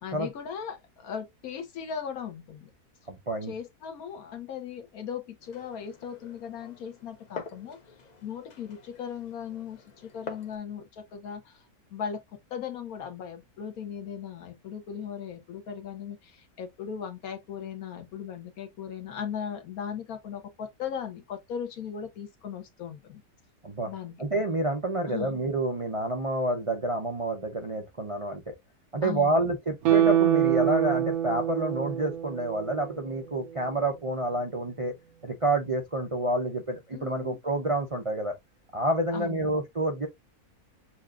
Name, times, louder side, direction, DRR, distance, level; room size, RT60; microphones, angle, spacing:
voice 1, 0.0-2.7 3.4-7.8 8.2-11.6 11.9-23.2 23.8-24.2 25.0-25.4 29.0-29.4 36.9-37.4 39.1-39.6, left 7 dB, 70° left, 1.5 m, -38 dB
voice 2, 3.1-3.5 23.6-23.9 24.2-28.5 28.9-34.9 35.2-38.3 38.7-40.1, right 1 dB, 45° right, 0.4 m, -28 dB
Glass, 5.4-10.6, left 5 dB, 45° left, 0.5 m, -46 dB
Guitar, 29.8-33.1 33.5-33.6, right 11 dB, 75° right, 1.2 m, -25 dB
7.1 x 2.5 x 2.3 m
omnidirectional pair, 1.6 m